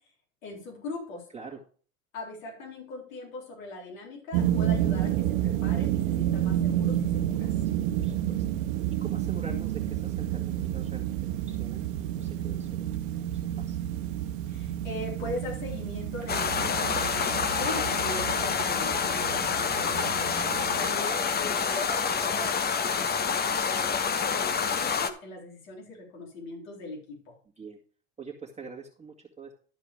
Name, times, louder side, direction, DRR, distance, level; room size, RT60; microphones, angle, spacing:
voice 1, 0.4-1.3 2.1-7.5 9.3-9.6 14.5-20.3 20.8-27.3, left 2 dB, 80° left, -2 dB, 3.8 m, -40 dB
sound 1, 4.3-20.9, right 11 dB, 70° right, 1.1 m, -30 dB
voice 2, 7.7-8.4 9.0-13.8 20.5-20.6 27.6-27.8 28.2-29.5, right 5 dB, 15° right, -2 dB, 2.0 m, -45 dB
sound 2, 16.3-25.1, left 6 dB, 25° left, 1.0 m, -27 dB
12.5 x 4.9 x 4.9 m, 0.43 s
hypercardioid pair, 90°, 40 cm